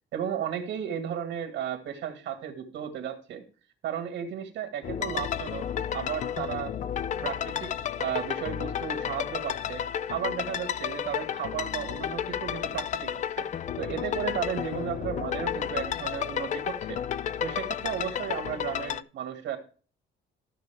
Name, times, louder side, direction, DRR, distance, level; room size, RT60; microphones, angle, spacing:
voice 1, 0.1-3.4 3.8-5.6 5.9-6.7 7.2-9.8 10.1-13.5 13.8-17.0 17.4-19.6, right 9 dB, 80° right, 5 dB, 2.2 m, -34 dB
sound 1, 4.8-19.0, left 9 dB, 40° left, 0.4 m, -32 dB
13.5 x 6.7 x 3.5 m, 0.38 s
cardioid pair, 155°, 19 cm